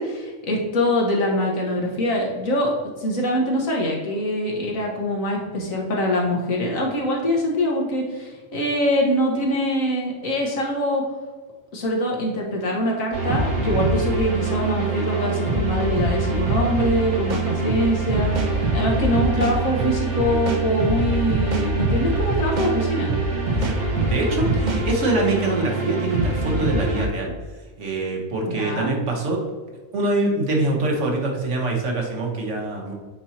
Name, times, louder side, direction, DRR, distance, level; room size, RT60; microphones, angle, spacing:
voice 1, 0.0-2.7 3.0-11.0 11.7-23.1 28.5-28.9, equal, 70° left, -1 dB, 1.7 m, -24 dB
sound 1, 13.1-27.1, right 3 dB, 80° right, 1.7 m, -24 dB
sound 2, 16.8-17.0 17.3-18.5 18.9-19.1 19.4-20.6 21.0-21.2 21.5-22.7 23.1-23.3 23.6-24.8, right 2 dB, 40° right, 0.8 m, -27 dB
voice 2, 24.0-27.3 27.8-29.4 29.9-32.9, right 2 dB, 60° right, 1 dB, 1.5 m, -24 dB
8.4 x 4.4 x 2.8 m, 1.4 s
omnidirectional pair, 1.5 m